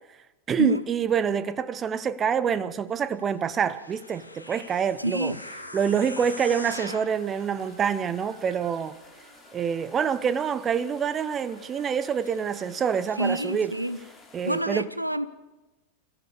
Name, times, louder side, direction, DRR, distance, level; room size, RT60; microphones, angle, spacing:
voice 1, 0.5-5.4 5.7-9.0 9.5-13.7 14.3-14.9, right 7 dB, 25° right, 0.8 m, -26 dB
sound 1, 3.4-10.9 11.3-13.9, right 5 dB, 65° right, 4.1 m, -55 dB
sound 2, 3.6-7.2 7.8-7.9, left 2 dB, 85° left, 2.0 m, -41 dB
voice 2, 5.0-5.4 13.2-14.0 14.4-15.3, right 1 dB, 90° right, 0.8 m, -27 dB
sound 3, 7.1-14.6, left 3 dB, 15° left, 4.2 m, -53 dB
27.0 x 15.0 x 6.9 m
figure-of-eight pair, 90°, 0 cm